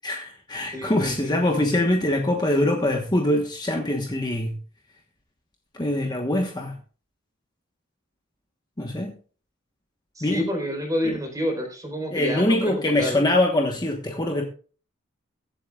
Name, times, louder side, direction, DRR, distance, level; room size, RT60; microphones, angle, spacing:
voice 1, 0.0-4.6 5.8-6.8 8.8-9.1 10.2-10.4 11.0-11.2 12.1-14.4, left 1 dB, 20° left, 2 dB, 1.2 m, -23 dB
voice 2, 0.7-1.3 10.2-13.2, equal, 15° right, 2 dB, 4.1 m, -29 dB
23.0 x 7.8 x 2.4 m, 0.40 s
head